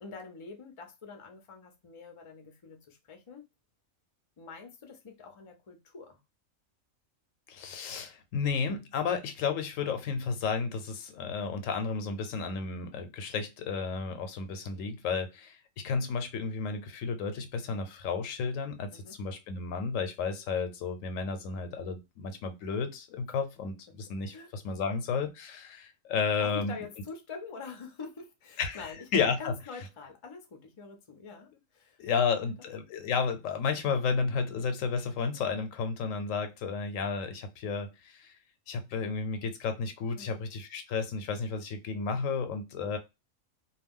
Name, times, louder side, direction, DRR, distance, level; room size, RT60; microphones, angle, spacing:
voice 1, 0.0-3.5 4.4-6.2 18.9-19.2 24.3-24.5 26.4-32.0 32.3-32.5 40.2-40.4, left 5 dB, 40° left, 0.4 m, -46 dB
voice 2, 7.5-15.6 15.8-26.8 28.6-29.5 32.0-38.3 38.7-43.0, left 5 dB, 85° left, 1.0 m, -32 dB
2.3 x 2.2 x 3.5 m
omnidirectional pair, 1.3 m